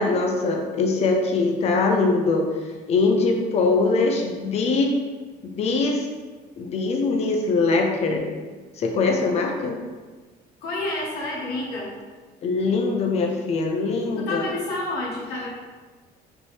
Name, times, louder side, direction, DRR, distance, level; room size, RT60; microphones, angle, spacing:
voice 1, 0.0-2.4 2.9-4.9 5.6-6.1 6.6-8.3 8.8-9.8 12.4-14.5, left 3 dB, 40° left, 2 dB, 0.6 m, -22 dB
voice 2, 10.6-11.9 14.2-15.5, left 2 dB, 65° left, -4 dB, 1.4 m, -29 dB
5.3 x 3.1 x 3.3 m, 1.4 s
cardioid pair, 175°, 17 cm